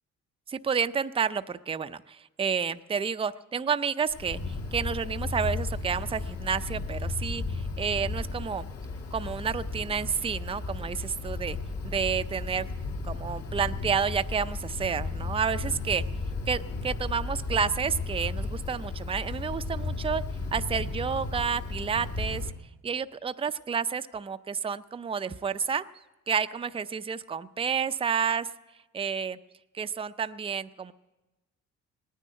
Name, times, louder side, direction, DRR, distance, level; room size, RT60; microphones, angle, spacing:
voice 1, 0.5-8.7 9.1-11.6 11.8-12.7 13.0-16.0 16.5-20.2 20.5-22.5 22.8-25.8 26.3-28.5 28.9-29.4 29.7-30.9, right 6 dB, 20° right, 11 dB, 0.5 m, -30 dB
Wind, 4.1-22.5, left 3 dB, 55° left, 2.0 m, -34 dB
18.5 x 10.0 x 7.6 m, 1.1 s
cardioid pair, 90°, 30 cm